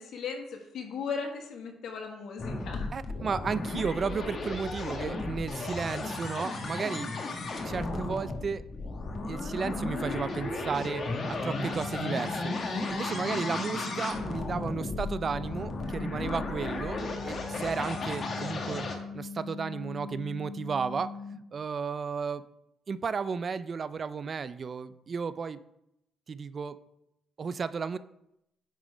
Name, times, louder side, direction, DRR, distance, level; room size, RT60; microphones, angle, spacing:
voice 1, 0.0-2.9 13.3-13.6, left 5 dB, 70° left, 2 dB, 1.3 m, -37 dB
sound 1, 2.4-19.0, left 2 dB, 50° left, 1.2 m, -34 dB
voice 2, 2.9-7.1 7.6-8.6 9.3-12.5 12.9-18.8 19.1-21.1 21.5-22.4 22.9-25.6 26.3-26.8 27.4-28.0, right 5 dB, 45° right, 15 dB, 0.4 m, -33 dB
sound 2, 11.3-21.3, left 4 dB, 25° right, 1.8 m, -41 dB
9.0 x 3.2 x 4.9 m, 0.81 s
cardioid pair, 90°, 0 cm